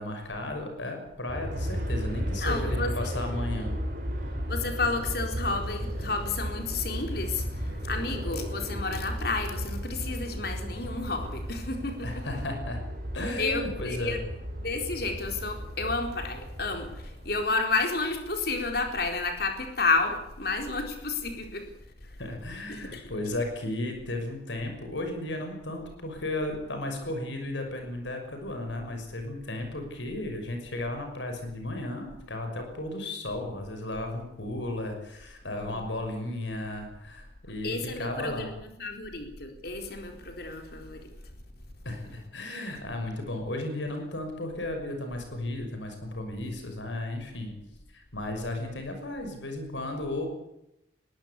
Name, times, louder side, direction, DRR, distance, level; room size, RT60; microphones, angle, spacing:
voice 1, 0.0-3.8 12.0-12.8 13.1-14.2 22.2-38.5 41.8-47.5 47.9-50.4, left 1 dB, 85° left, 4 dB, 6.1 m, -34 dB
Aircraft, 1.3-17.5, equal, 50° right, 5.5 m, -34 dB
voice 2, 2.4-3.3 4.5-12.3 13.4-14.2 14.6-21.6 22.7-23.1 35.4-35.9 37.6-41.1, left 3 dB, 55° left, 5 dB, 4.3 m, -31 dB
21.5 x 18.0 x 8.5 m, 0.83 s
head